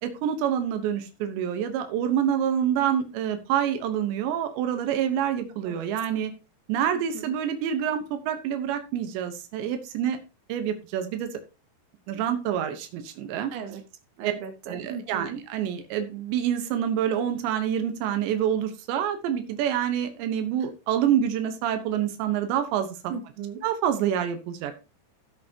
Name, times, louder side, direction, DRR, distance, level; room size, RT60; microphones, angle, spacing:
voice 1, 0.0-6.3 6.7-10.2 10.5-11.3 12.1-13.5 14.2-14.3 14.7-23.0 23.6-24.7, right 9 dB, 90° right, 7 dB, 3.5 m, -27 dB
voice 2, 6.9-7.4 13.5-13.8 14.2-15.4 20.6-20.7 23.1-23.6, right 6 dB, 70° right, 5 dB, 3.6 m, -38 dB
15.5 x 7.7 x 2.9 m, 0.30 s
omnidirectional pair, 4.9 m